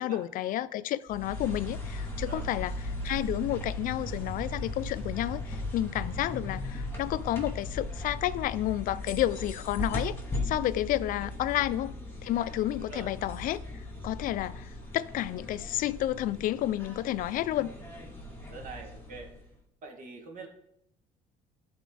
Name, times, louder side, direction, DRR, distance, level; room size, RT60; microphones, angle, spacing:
voice 1, 0.0-10.2 10.4-12.0 12.2-17.7, left 13 dB, 60° left, 0.4 m, -31 dB
sound 1, 1.1-19.5, left 2 dB, 15° left, 2.3 m, -38 dB
voice 2, 12.8-13.1 18.3-19.3 19.8-20.5, right 3 dB, 55° right, 1.9 m, -44 dB
12.0 x 4.2 x 3.9 m
cardioid pair, 115°, 16 cm